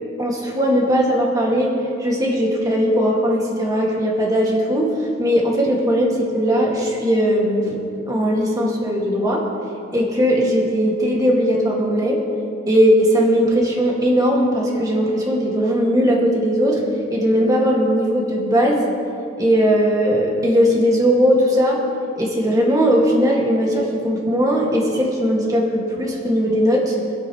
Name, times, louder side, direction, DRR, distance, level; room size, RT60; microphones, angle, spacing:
voice 1, 0.2-1.7 2.0-9.4 9.9-12.2 12.7-16.8 17.1-18.9 19.4-21.8 22.2-27.0, equal, 20° right, -3 dB, 2.0 m, -18 dB
26.0 x 8.8 x 3.2 m, 2.7 s
head